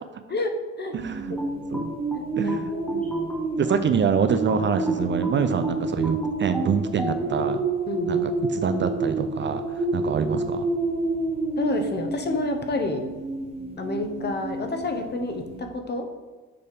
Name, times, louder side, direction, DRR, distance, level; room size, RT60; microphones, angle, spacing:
voice 1, 0.9-1.3 1.7-1.9 2.4-2.7 3.6-7.6 8.1-10.7, right 7 dB, 40° right, 9 dB, 0.4 m, -26 dB
sound 1, 1.0-15.6, right 2 dB, 20° right, 0.9 m, -29 dB
sound 2, 1.4-4.0 4.5-7.2, equal, 5° left, 1.4 m, -35 dB
voice 2, 2.1-3.1 7.9-8.3 11.6-13.1 13.8-16.1, left 2 dB, 35° left, 4 dB, 0.9 m, -29 dB
6.7 x 3.4 x 5.2 m, 1.3 s
cardioid pair, 90°, 30 cm